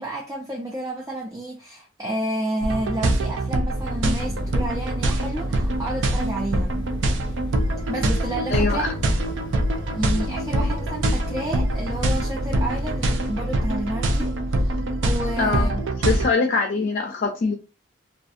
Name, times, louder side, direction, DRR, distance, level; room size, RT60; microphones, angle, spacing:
voice 1, 0.0-6.9 7.9-8.8 9.9-15.7, right 1 dB, 15° right, 0.4 m, -30 dB
sound 1, 2.6-16.3, right 1 dB, 75° right, 0.4 m, -24 dB
sound 2, 3.7-13.0, left 1 dB, 25° left, 0.7 m, -39 dB
voice 2, 8.5-8.9 15.4-17.6, left 4 dB, 50° left, 0.4 m, -23 dB
2.5 x 2.3 x 2.5 m
head